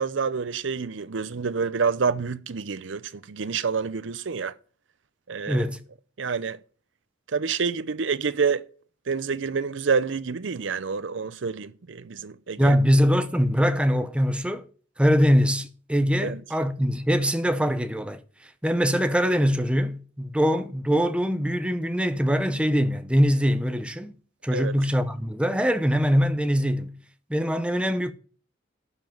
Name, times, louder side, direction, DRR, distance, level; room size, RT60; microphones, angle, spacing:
voice 1, 0.0-3.0 3.3-4.5 5.3-5.7 6.2-6.6 7.3-8.6 9.1-12.8 16.2-16.4 24.5-24.7, right 5 dB, 70° right, 0.6 m, -27 dB
voice 2, 5.5-5.8 12.6-14.6 15.0-18.2 18.6-24.1 24.4-27.0 27.3-28.1, equal, 5° right, 0.8 m, -23 dB
12.0 x 5.9 x 7.2 m
head